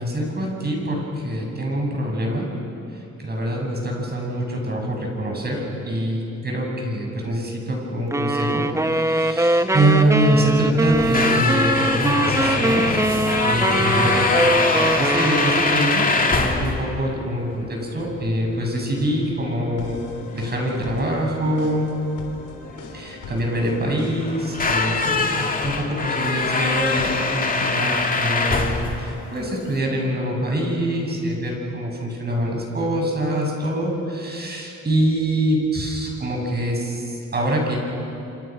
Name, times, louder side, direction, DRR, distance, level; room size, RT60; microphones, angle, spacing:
voice 1, 0.0-2.5 3.2-13.0 13.4-20.0 20.3-21.9 22.9-37.8, right 1 dB, 35° right, 0 dB, 7.4 m, -24 dB
sound 1, 8.1-16.0, right 1 dB, 10° right, 1.0 m, -22 dB
sound 2, 10.9-29.8, left 3 dB, 30° left, 2.6 m, -24 dB
sound 3, 19.8-29.4, left 5 dB, 85° left, 3.7 m, -40 dB
27.0 x 27.0 x 6.2 m, 2.8 s
cardioid pair, 90°, 30 cm